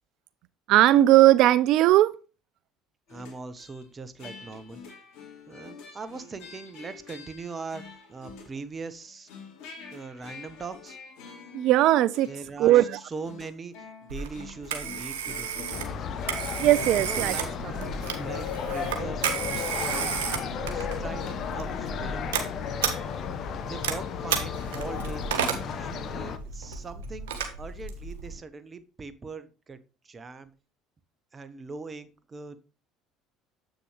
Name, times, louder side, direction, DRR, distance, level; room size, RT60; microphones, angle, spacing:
voice 1, 0.7-2.1 11.5-12.3 12.6-13.0 16.6-17.4, right 14 dB, 65° right, 0.3 m, -18 dB
sound 1, 3.1-3.8 4.2-8.7 9.0-21.8, left 5 dB, 70° left, 2.5 m, -47 dB
voice 2, 3.1-4.8 5.5-9.3 9.9-11.0 12.3-16.1 17.0-17.5 18.2-20.1 20.7-21.2 21.5-22.3 23.7-27.3 27.6-29.8 30.0-30.5 31.3-32.6, right 4 dB, 30° right, 1.1 m, -41 dB
Telephone, 14.1-28.3, right 6 dB, 80° right, 1.4 m, -33 dB
sound 2, 15.7-26.4, left 7 dB, 50° left, 0.9 m, -34 dB
8.0 x 6.3 x 3.3 m
hypercardioid pair, 70°, 0 cm